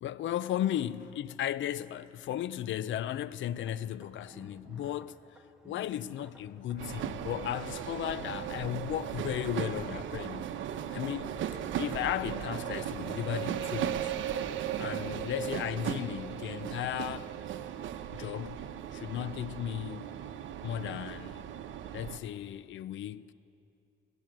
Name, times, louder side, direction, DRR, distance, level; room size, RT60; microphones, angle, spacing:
voice 1, 0.0-5.2 5.6-10.5 10.9-11.3 11.8-14.1 14.8-17.3 18.1-20.1 20.6-21.5 21.9-23.3, left 11 dB, 70° left, 0.7 m, -35 dB
sound 1, 3.6-8.9, right 1 dB, 5° right, 2.4 m, -55 dB
sound 2, 6.8-22.2, right 9 dB, 75° right, 1.1 m, -37 dB
25.5 x 17.5 x 7.7 m
cardioid pair, 90°, 20 cm